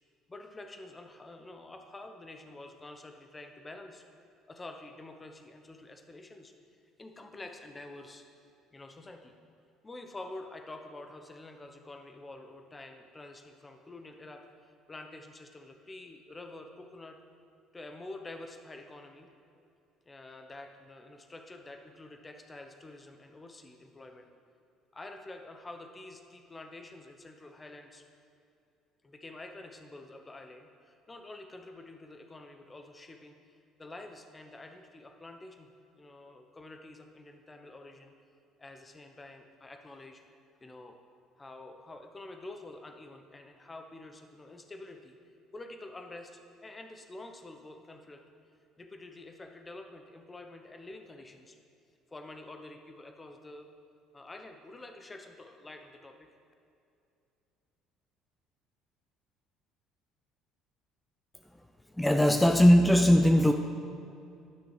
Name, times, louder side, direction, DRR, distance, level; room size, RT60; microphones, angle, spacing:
voice 1, 0.3-4.0 4.5-6.5 7.0-8.2 8.7-9.3 9.8-14.4 14.9-17.2 17.7-19.3 20.1-24.3 24.9-28.1 29.0-35.7 36.0-38.1 38.6-40.2 40.6-41.0 41.4-45.2 45.5-48.2 48.8-51.6 52.1-53.7 54.1-56.3, left 2 dB, 20° left, 5 dB, 0.9 m, -48 dB
voice 2, 62.0-63.5, equal, 5° left, 6 dB, 0.5 m, -20 dB
11.0 x 6.2 x 4.9 m, 2.6 s
supercardioid pair, 75°, 0 cm